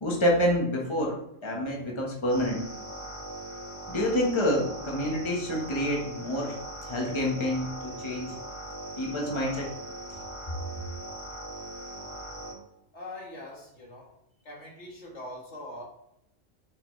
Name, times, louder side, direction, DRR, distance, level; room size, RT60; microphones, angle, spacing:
voice 1, 0.0-2.6 3.9-6.6 6.9-8.3 9.0-9.7, left 1 dB, 25° left, -2 dB, 1.4 m, -28 dB
sound 1, 2.3-12.5, right 1 dB, 25° right, 2.3 m, -40 dB
voice 2, 12.9-14.1 14.4-15.8, left 1 dB, 65° left, -2 dB, 2.2 m, -42 dB
7.3 x 6.1 x 3.2 m, 0.79 s
omnidirectional pair, 1.3 m